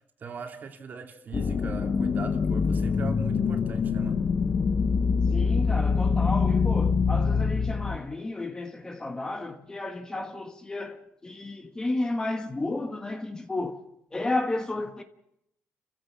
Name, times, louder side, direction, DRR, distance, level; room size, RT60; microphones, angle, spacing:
voice 1, 0.2-4.2, right 5 dB, 40° right, 2.6 m, -40 dB
sound 1, 1.3-8.0, left 5 dB, 40° left, 0.9 m, -25 dB
voice 2, 5.3-13.8 14.1-15.0, left 2 dB, 15° left, 1.4 m, -32 dB
29.5 x 15.0 x 7.4 m
cardioid pair, 140°, 5 cm